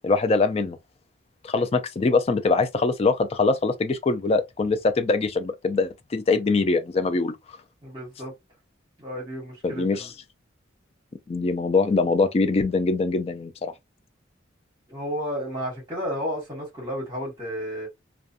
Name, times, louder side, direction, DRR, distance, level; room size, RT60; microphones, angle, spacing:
voice 1, 0.0-0.8 1.4-7.4 9.6-10.1 11.3-13.7, left 3 dB, 30° left, 0.3 m, -23 dB
voice 2, 7.8-8.3 9.0-10.1 14.9-17.9, equal, 25° right, 1.3 m, -32 dB
2.5 x 2.2 x 2.6 m
head